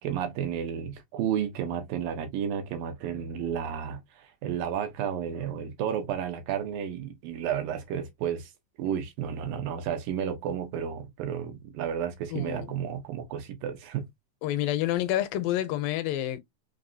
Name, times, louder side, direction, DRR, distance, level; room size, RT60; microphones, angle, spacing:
voice 1, 0.0-8.5 8.8-14.1, right 8 dB, 80° right, 2.5 m, -32 dB
voice 2, 12.3-12.7 14.4-16.4, left 13 dB, 80° left, 2.3 m, -28 dB
5.9 x 2.6 x 2.6 m
omnidirectional pair, 4.1 m